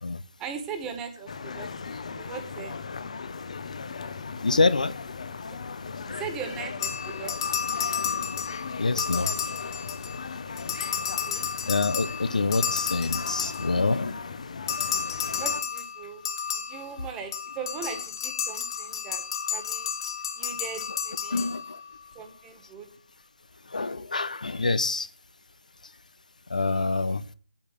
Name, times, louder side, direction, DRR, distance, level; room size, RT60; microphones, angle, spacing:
voice 1, 0.4-2.8 5.5-5.6 6.1-7.6 11.2-11.5 15.4-16.2 16.5-19.2 19.5-19.9 20.3-21.5 22.1-22.9, right 6 dB, 10° right, 1.6 m, -39 dB
sound 1, 1.3-15.6, left 5 dB, 60° left, 1.0 m, -38 dB
voice 2, 4.4-5.0 8.8-9.3 11.7-14.2 21.3-21.8 23.6-25.1 25.8-25.9 26.5-27.3, left 3 dB, 90° left, 0.9 m, -26 dB
sound 2, 6.8-10.3 10.6-14.0 14.7-22.0, left 7 dB, 35° left, 1.3 m, -32 dB
8.8 x 8.8 x 6.7 m
hypercardioid pair, 165°, 4 cm